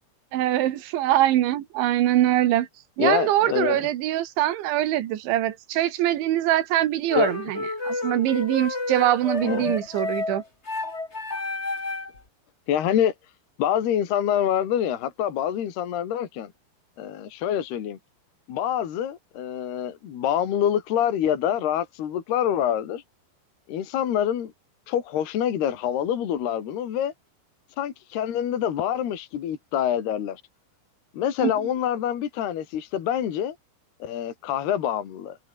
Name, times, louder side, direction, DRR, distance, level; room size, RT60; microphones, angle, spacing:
voice 1, 0.3-2.7 3.0-10.4 31.4-31.5, right 13 dB, 80° right, 4.0 m, -23 dB
voice 2, 3.0-3.8 7.2-7.3 9.4-9.8 12.7-13.1 13.6-16.5 17.0-18.0 18.5-23.0 23.7-24.5 24.9-27.1 27.8-30.4 31.1-33.6 34.0-35.4, left 10 dB, 60° left, 4.4 m, -26 dB
sound 1, 7.1-12.2, left 3 dB, 15° left, 2.8 m, -30 dB
omnidirectional pair, 5.3 m